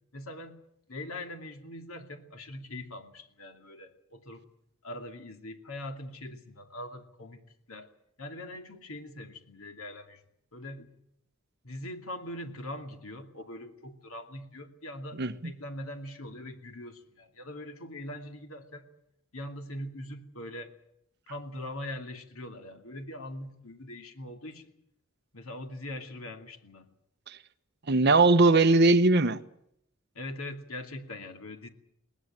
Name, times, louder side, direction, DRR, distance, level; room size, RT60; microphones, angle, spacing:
voice 1, 0.1-0.6 0.9-4.4 4.8-7.9 8.2-10.2 10.5-10.9 11.6-18.9 19.3-20.7 21.3-24.7 25.3-26.9 30.1-31.7, left 1 dB, 85° left, 2.6 m, -42 dB
voice 2, 27.9-29.4, right 3 dB, 50° right, 1.0 m, -20 dB
21.0 x 19.0 x 9.2 m
head